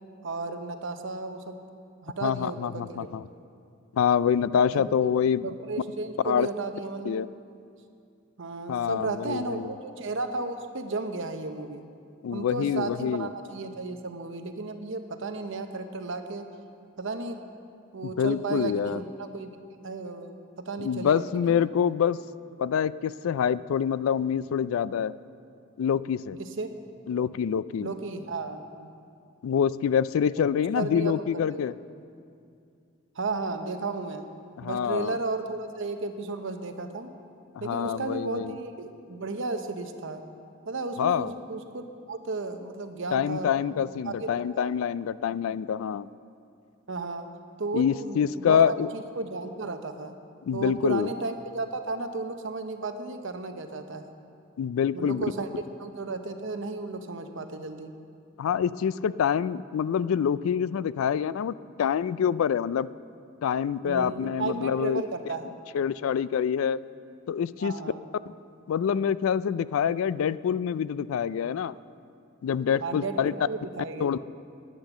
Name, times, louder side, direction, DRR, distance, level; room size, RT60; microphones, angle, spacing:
voice 1, 0.2-1.6 2.0-3.0 4.7-5.1 5.4-7.2 8.4-11.8 12.3-16.5 17.0-17.4 17.9-19.5 19.8-21.6 26.4-26.7 27.8-28.9 30.7-31.6 33.2-34.3 34.6-37.1 37.6-40.2 40.7-43.5 44.0-44.6 46.9-47.3 47.6-50.1 50.5-54.1 54.9-55.5 55.8-57.9 63.8-65.5 67.6-68.0 72.8-74.1, right 3 dB, 65° right, 7 dB, 0.9 m, -34 dB
voice 2, 2.2-3.3 3.9-5.5 6.2-6.5 7.1-7.3 8.7-9.7 12.2-13.3 18.0-19.0 20.8-22.2 22.6-25.1 25.8-26.4 27.1-27.9 29.4-31.7 34.6-35.2 37.5-38.6 41.0-41.3 43.1-46.1 47.7-48.9 50.5-51.1 54.6-55.2 58.4-62.9 63.4-65.0 65.7-66.8 67.3-67.7 68.7-71.7 72.4-73.3 74.0-74.3, left 8 dB, 75° left, 17 dB, 0.3 m, -26 dB
10.0 x 9.8 x 7.2 m, 2.4 s
head